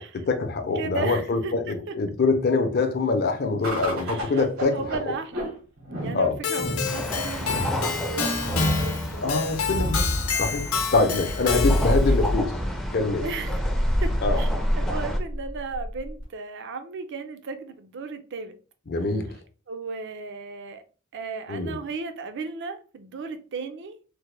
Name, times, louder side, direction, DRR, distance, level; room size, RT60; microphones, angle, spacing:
voice 1, 0.0-5.1 6.1-6.4 9.2-12.5 12.9-13.2 14.2-14.4 18.9-19.3 21.5-21.8, left 3 dB, 50° left, 0.6 m, -25 dB
voice 2, 0.8-1.9 3.9-5.5 6.0-9.4 11.9-12.2 13.2-13.6 14.0-14.5 14.8-18.6 19.7-20.8 21.1-24.0, right 4 dB, 55° right, 0.4 m, -35 dB
sound 1, 3.6-16.2, equal, 85° right, 1.4 m, -28 dB
Keyboard (musical), 6.4-12.1, left 5 dB, 90° left, 0.7 m, -28 dB
sound 2, 6.8-15.2, equal, ahead, 0.4 m, -34 dB
3.4 x 2.1 x 3.2 m
head